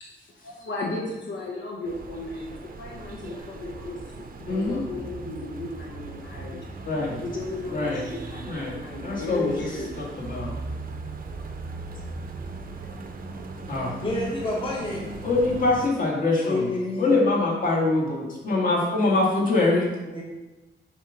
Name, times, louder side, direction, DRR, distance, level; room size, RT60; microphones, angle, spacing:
voice 1, 0.3-4.1 4.4-6.6 7.2-10.0 16.8-16.9, left 2 dB, 70° left, -2 dB, 1.0 m, -35 dB
sound 1, 1.8-15.9, right 3 dB, 45° right, 0.6 m, -38 dB
voice 2, 4.5-4.8 6.9-7.2 7.7-8.0 8.4-8.8 9.0-9.7 10.0-10.5 13.7-13.9 15.2-16.7 17.0-19.8, left 2 dB, 45° left, -3 dB, 1.8 m, -24 dB
voice 3, 14.0-15.1 16.4-17.1 20.1-20.2, left 2 dB, 25° left, -4 dB, 1.2 m, -29 dB
7.4 x 3.5 x 5.0 m, 1.1 s
wide cardioid pair, 170°, 20 cm